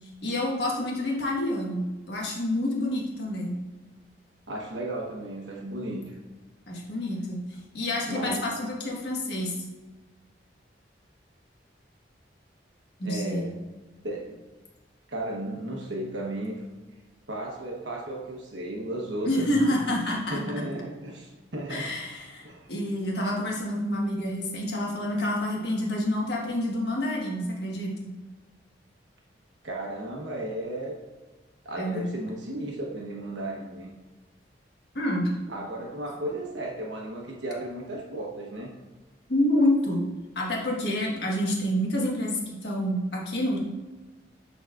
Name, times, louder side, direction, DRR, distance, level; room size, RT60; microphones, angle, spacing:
voice 1, 0.2-3.6 6.7-7.4 7.7-9.5 13.0-13.5 19.2-20.6 21.7-28.1 31.8-32.1 34.9-35.3 39.3-40.1 40.3-43.6, left 1 dB, 65° left, -2 dB, 1.5 m, -28 dB
voice 2, 4.5-6.2 8.0-8.4 13.0-13.5 14.0-14.4 15.1-16.6 17.3-20.0 20.3-21.9 22.4-22.7 29.6-30.9 31.6-33.9 35.5-38.7, right 1 dB, 85° right, -2 dB, 1.2 m, -34 dB
10.5 x 4.0 x 2.5 m, 1.2 s
head